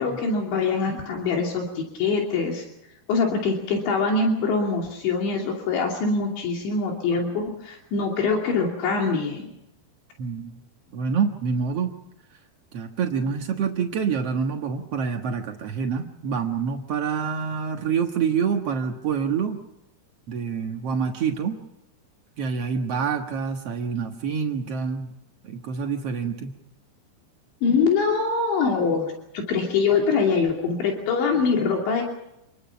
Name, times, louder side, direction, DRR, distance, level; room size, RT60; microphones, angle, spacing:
voice 1, 0.0-2.6 3.1-9.5 27.6-32.0, left 4 dB, 75° left, 1 dB, 5.0 m, -24 dB
voice 2, 10.2-10.5 10.9-11.9 12.7-19.6 20.3-21.6 22.4-25.1 25.4-26.5, right 6 dB, 75° right, 3 dB, 1.4 m, -27 dB
29.0 x 21.0 x 5.9 m, 0.83 s
omnidirectional pair, 5.3 m